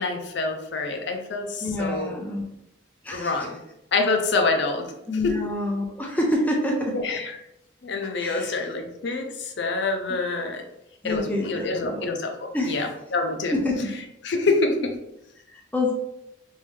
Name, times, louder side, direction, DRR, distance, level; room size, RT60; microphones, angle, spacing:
voice 1, 0.0-2.2 3.1-3.6 3.9-4.9 5.2-5.3 7.0-7.3 7.8-10.6 11.0-13.6 14.2-15.0, left 3 dB, 60° left, 4 dB, 0.5 m, -26 dB
voice 2, 1.6-2.5 3.0-3.5 5.1-7.0 8.2-8.5 10.1-10.2 11.0-12.1 12.5-12.8 13.5-13.9 15.5-15.9, left 1 dB, 10° left, -1 dB, 0.4 m, -27 dB
3.1 x 2.6 x 3.3 m, 0.84 s
head